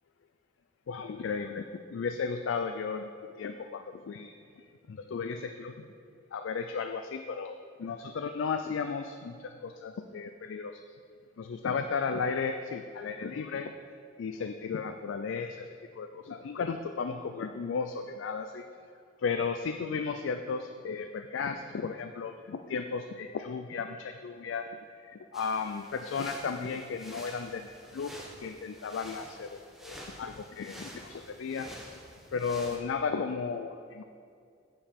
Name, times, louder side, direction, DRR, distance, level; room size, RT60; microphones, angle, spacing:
voice 1, 0.9-3.1 3.4-5.7 6.3-10.8 11.4-13.7 14.2-18.6 19.2-24.7 25.0-31.7 32.3-34.0, left 5 dB, 85° left, 7 dB, 0.4 m, -35 dB
sound 1, 25.3-32.8, equal, ahead, 1.0 m, -48 dB
8.7 x 7.1 x 4.3 m, 2.3 s
head